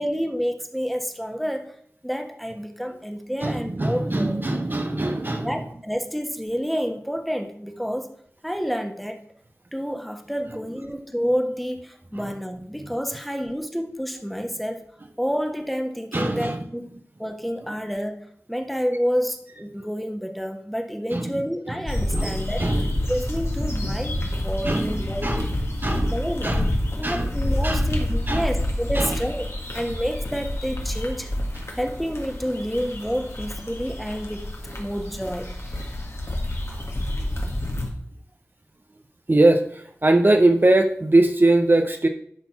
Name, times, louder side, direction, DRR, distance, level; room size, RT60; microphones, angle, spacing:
voice 1, 0.0-1.8 2.0-4.4 5.4-8.1 8.4-9.2 9.7-14.8 15.2-16.9 17.2-22.7 23.1-25.5 26.1-26.6 26.9-29.5 29.7-31.3 31.7-34.5 34.8-35.7, equal, ahead, 5 dB, 1.3 m, -29 dB
voice 2, 3.4-5.7 12.1-12.2 16.1-16.6 21.1-21.4 22.1-22.9 24.6-26.7 27.0-27.3 27.6-27.9 28.3-28.5 28.9-29.2 31.5-31.7 36.7-36.8 37.1-37.3 39.3-42.1, right 2 dB, 40° right, 5 dB, 0.8 m, -22 dB
sound 1, 21.9-37.9, left 1 dB, 60° left, 1.9 m, -28 dB
11.0 x 4.1 x 5.8 m, 0.64 s
wide cardioid pair, 45°, 5 cm